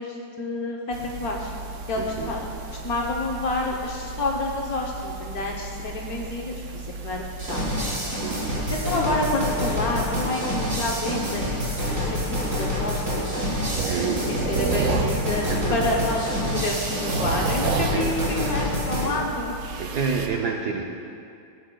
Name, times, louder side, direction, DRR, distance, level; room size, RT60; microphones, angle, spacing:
voice 1, 0.0-1.5 1.9-2.5 2.8-7.2 7.5-7.6 8.8-13.5 13.9-16.3 16.6-19.5, left 2 dB, 60° left, -1 dB, 1.1 m, -29 dB
sound 1, 0.9-20.3, right 4 dB, 85° right, 0.6 m, -33 dB
voice 2, 2.0-2.4 8.2-8.7 13.9-16.1 16.4-16.7 17.9-18.2 19.0-19.2 19.8-20.8, right 5 dB, 70° right, 1 dB, 1.0 m, -30 dB
sound 2, 7.4-19.1, left 1 dB, 40° right, 2.6 m, -27 dB
14.5 x 8.4 x 2.2 m, 2.4 s
omnidirectional pair, 2.1 m